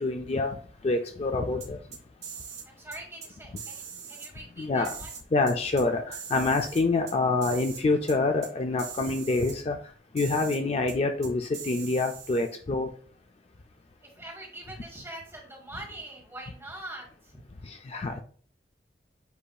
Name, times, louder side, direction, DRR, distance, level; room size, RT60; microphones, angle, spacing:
voice 1, 0.0-0.6 0.8-1.8 4.6-4.9 5.3-9.8 10.1-12.9 17.9-18.2, left 3 dB, 35° left, 5 dB, 0.4 m, -26 dB
sound 1, 1.6-2.7 2.9-3.3 3.6-4.3 4.8-5.8 6.1-7.1 7.4-7.8 8.1-8.2 8.4-8.5 8.8-9.6 10.2-10.6 10.9-11.0 11.2-12.5, right 7 dB, 40° right, 1.0 m, -41 dB
voice 2, 2.6-5.1 14.0-17.4, right 1 dB, 15° right, 0 dB, 1.5 m, -43 dB
8.0 x 2.7 x 2.3 m, 0.44 s
head